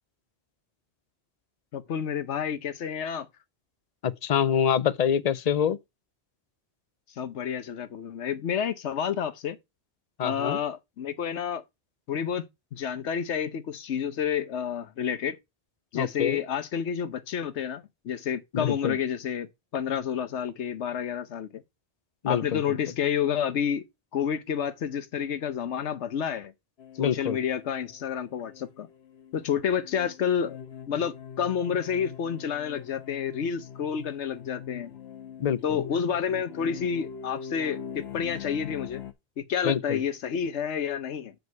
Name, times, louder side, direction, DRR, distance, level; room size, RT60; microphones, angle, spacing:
voice 1, 1.7-3.3 7.2-9.6 10.2-11.6 12.1-12.4 12.7-15.4 15.9-21.6 22.3-23.8 24.1-26.5 27.0-28.9 29.3-30.6 30.9-34.9 35.6-39.0 39.4-41.3, left 8 dB, 90° left, 1.1 m, -29 dB
voice 2, 4.0-5.8 10.2-10.6 15.9-16.4 18.5-19.0 22.2-22.8 27.0-27.4 35.4-35.8 39.6-40.0, left 8 dB, 50° left, 0.5 m, -26 dB
sound 1, 26.8-39.1, left 8 dB, 70° left, 1.2 m, -43 dB
8.0 x 5.1 x 4.6 m
omnidirectional pair, 1.1 m